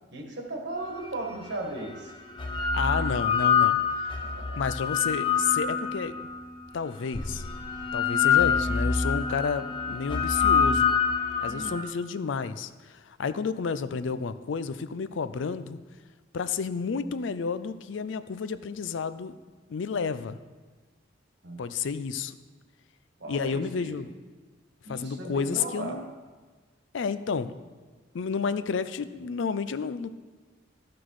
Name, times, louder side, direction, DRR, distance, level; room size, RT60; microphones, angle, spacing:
voice 1, 0.1-2.1 4.2-4.6 11.4-11.8 21.4-21.7 23.2-23.9 24.8-26.0, right 2 dB, 60° right, 2 dB, 1.5 m, -37 dB
sound 1, 1.1-1.2 2.1-6.4 7.1-11.8, left 6 dB, 25° left, 0.7 m, -26 dB
voice 2, 2.6-3.8 4.0-4.2 4.6-6.3 6.7-7.4 7.9-10.9 11.4-15.8 16.3-19.3 19.7-20.4 21.6-22.3 23.3-24.1 24.9-26.1 26.9-27.5 28.1-30.1, left 5 dB, 65° left, 13 dB, 0.4 m, -31 dB
12.5 x 6.0 x 4.8 m, 1.4 s
head